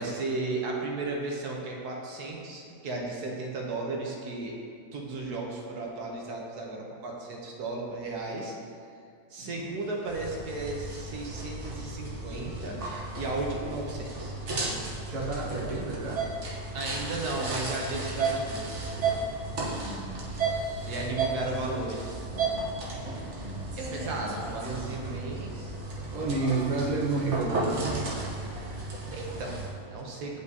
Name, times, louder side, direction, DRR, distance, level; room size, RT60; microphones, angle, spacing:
voice 1, 0.0-4.6 4.9-8.5 9.3-12.8 13.1-14.3 16.7-19.0 20.8-22.3 22.9-23.3 23.8-25.5 28.5-30.4, right 2 dB, 80° right, -1 dB, 1.4 m, -35 dB
voice 2, 9.4-9.7 15.1-16.2 19.6-20.9 23.3-23.9 26.1-27.9, right 3 dB, 35° right, -3 dB, 0.9 m, -32 dB
sound 1, 10.0-29.7, right 3 dB, 50° right, 1.3 m, -34 dB
9.5 x 5.3 x 2.7 m, 2.4 s
omnidirectional pair, 1.6 m